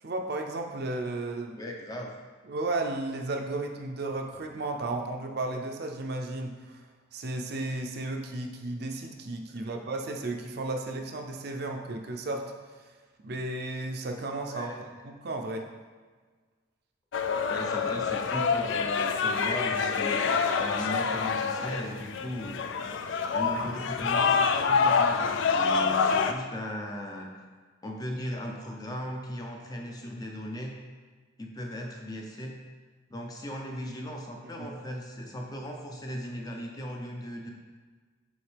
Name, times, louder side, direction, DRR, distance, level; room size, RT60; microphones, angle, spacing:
voice 1, 0.0-1.6 2.5-6.8 7.1-12.5 13.2-14.7 15.0-15.7 34.6-34.7, right 2 dB, 50° right, 3 dB, 0.5 m, -34 dB
voice 2, 1.6-2.1 9.5-9.8 14.5-14.9 17.4-22.6 23.3-27.3 27.8-30.8 31.4-32.6 33.1-37.5, equal, 20° left, 1 dB, 0.6 m, -37 dB
sound 1, 17.1-26.3, left 5 dB, 65° left, 0.4 m, -27 dB
7.1 x 4.3 x 3.4 m, 1.5 s
head